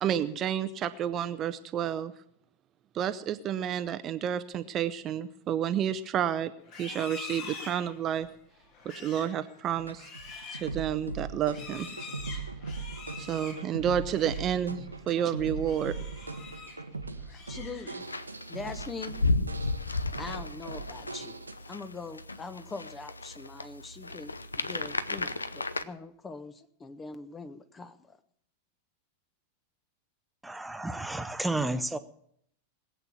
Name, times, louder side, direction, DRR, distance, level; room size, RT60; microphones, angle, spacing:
voice 1, 0.0-2.1 2.9-6.5 6.8-8.3 8.9-10.1 10.5-11.9 13.2-15.9, right 9 dB, 30° right, 0.8 m, -30 dB
Livestock farm animals working animals, 6.6-14.5 14.9-15.2 15.6-16.9 17.2-18.2, left 5 dB, 40° left, 3.2 m, -45 dB
sound 1, 9.7-21.5, right 4 dB, 80° right, 1.1 m, -40 dB
voice 2, 17.3-18.0 18.5-19.1 20.1-21.3 21.6-28.2, left 4 dB, 15° left, 1.3 m, -42 dB
sound 2, 18.0-25.8, left 2 dB, 80° left, 0.7 m, -34 dB
voice 3, 30.4-32.0, right 2 dB, 5° right, 1.0 m, -31 dB
20.5 x 8.5 x 7.2 m
figure-of-eight pair, 90°, 0 cm